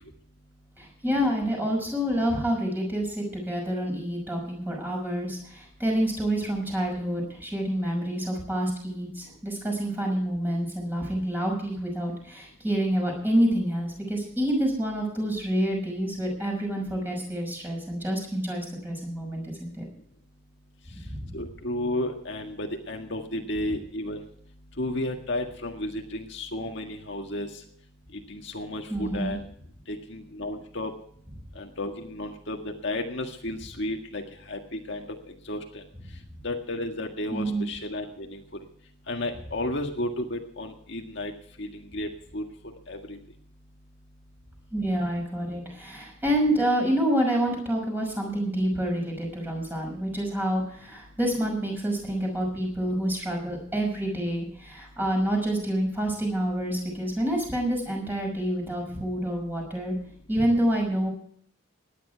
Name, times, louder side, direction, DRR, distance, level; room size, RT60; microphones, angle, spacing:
voice 1, 0.8-19.9 21.1-21.4 28.9-29.4 37.3-37.6 44.7-59.9 60.3-61.1, right 1 dB, 10° right, 0 dB, 5.9 m, -28 dB
voice 2, 21.3-24.2 24.8-27.5 28.3-29.4 29.9-30.9 31.6-35.1 35.5-35.8 36.4-38.4 39.1-41.3 41.6-42.4 42.9-43.2, left 1 dB, 55° left, 2 dB, 1.8 m, -33 dB
18.5 x 11.0 x 4.6 m, 0.62 s
head